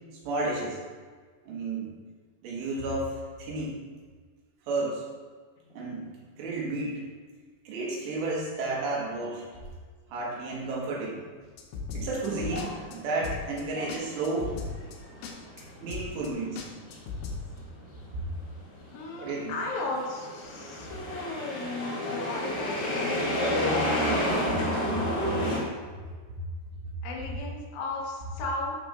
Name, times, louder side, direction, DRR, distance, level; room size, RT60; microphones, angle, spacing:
voice 1, 0.3-0.8 1.5-1.9 2.4-3.8 4.7-5.0 5.7-6.1 6.4-7.0 7.7-9.5 10.1-11.2 11.9-14.5 15.8-16.6 19.2-19.5, right 2 dB, 80° right, -4 dB, 3.8 m, -32 dB
sound 1, 11.6-12.7 12.9-13.0 13.2-13.6 13.9-14.0 14.2-15.0 15.2-15.3 15.6-15.7 15.9-16.3 16.6-17.4, left 4 dB, 80° left, 3.0 m, -36 dB
sound 2, 12.3-13.2 13.6-25.6, equal, 45° left, 1.7 m, -30 dB
voice 2, 18.9-23.9 27.0-28.7, left 3 dB, 60° left, -3 dB, 2.0 m, -35 dB
11.0 x 6.1 x 2.6 m, 1.5 s
omnidirectional pair, 5.0 m